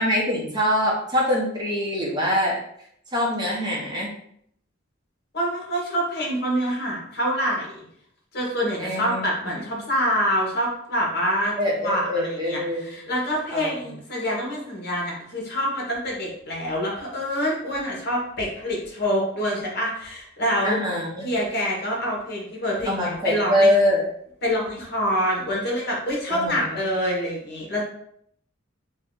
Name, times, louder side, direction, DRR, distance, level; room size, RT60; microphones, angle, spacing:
voice 1, 0.0-2.6 3.1-4.1 8.8-9.2 9.7-9.8 11.5-13.0 13.5-13.7 20.6-21.2 22.9-24.0 26.3-26.5, left 1 dB, 20° right, -4 dB, 0.9 m, -23 dB
voice 2, 5.3-7.8 8.3-11.5 11.8-20.8 21.2-23.7 24.4-27.8, equal, 55° left, -2 dB, 1.0 m, -26 dB
2.6 x 2.3 x 3.7 m, 0.68 s
head